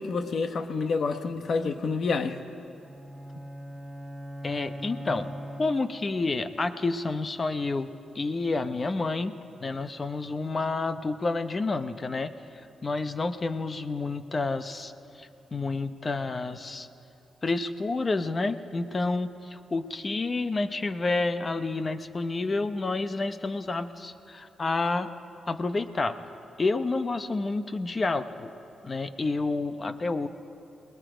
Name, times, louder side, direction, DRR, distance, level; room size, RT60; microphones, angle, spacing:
voice 1, 0.0-2.4, left 4 dB, 50° left, 8 dB, 1.0 m, -28 dB
sound 1, 2.8-6.3, equal, ahead, 1.1 m, -40 dB
voice 2, 4.4-5.3 5.6-9.3 9.6-12.3 12.8-14.9 15.2-16.9 17.4-25.1 25.5-26.2 26.6-28.5 28.8-30.3, left 3 dB, 25° left, 10 dB, 0.7 m, -29 dB
29.5 x 20.0 x 5.0 m, 2.9 s
wide cardioid pair, 160°, 0 cm